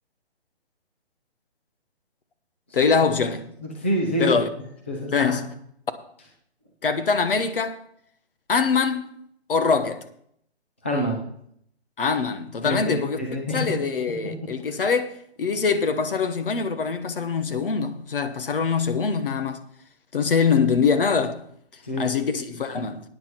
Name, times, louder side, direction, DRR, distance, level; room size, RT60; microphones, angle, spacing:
voice 1, 2.7-3.4 4.2-4.5 5.1-5.4 6.8-7.8 8.5-9.2 9.5-10.0 12.0-13.2 13.5-19.6 20.1-21.4 22.0-23.0, left 5 dB, 55° left, 1.2 m, -23 dB
voice 2, 3.6-4.4 4.9-5.4 10.8-11.2 12.6-13.7 14.7-14.8 21.8-22.0, equal, 10° left, 0.5 m, -26 dB
13.5 x 9.4 x 4.5 m
hypercardioid pair, 170°, 33 cm